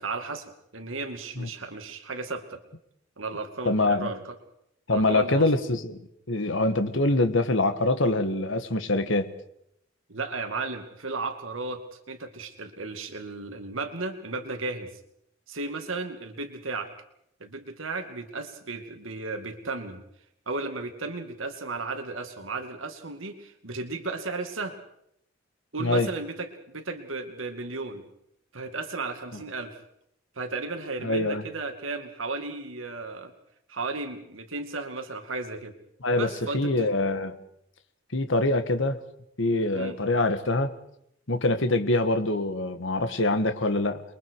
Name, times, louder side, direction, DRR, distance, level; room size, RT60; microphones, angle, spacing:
voice 1, 0.0-2.6 3.2-4.4 4.9-5.5 10.1-14.9 15.5-16.9 17.4-20.0 20.5-24.8 25.7-26.5 26.7-28.0 28.5-29.8 30.4-33.3 33.7-35.7 36.2-36.9 39.7-40.0, right 3 dB, 75° right, 6 dB, 2.4 m, -34 dB
voice 2, 3.7-4.1 4.9-6.0 6.3-9.3 25.8-26.1 31.0-31.4 36.0-36.3 36.5-37.4 38.1-39.0 39.4-40.7 41.3-44.0, left 2 dB, 70° left, 8 dB, 1.7 m, -24 dB
30.0 x 22.5 x 4.8 m, 0.74 s
head